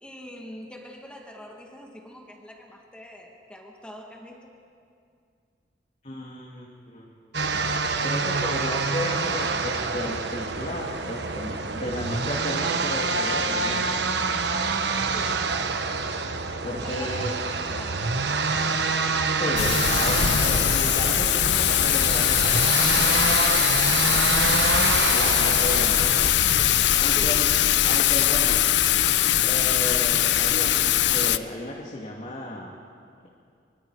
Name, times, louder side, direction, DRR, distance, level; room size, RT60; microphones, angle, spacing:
voice 1, 0.0-4.5 15.1-16.2 16.8-18.2 27.1-27.4, left 1 dB, 5° left, 0 dB, 2.1 m, -44 dB
voice 2, 6.0-7.1 8.0-13.9 16.6-17.3 19.4-24.0 25.1-26.0 27.0-27.5 27.8-28.6 29.4-32.8, left 1 dB, 40° left, -2 dB, 2.4 m, -34 dB
sound 1, 7.3-26.3, right 4 dB, 75° right, 1.2 m, -27 dB
Thunder / Rain, 19.6-31.4, left 11 dB, 80° left, 0.6 m, -21 dB
24.5 x 24.0 x 4.9 m, 2.3 s
head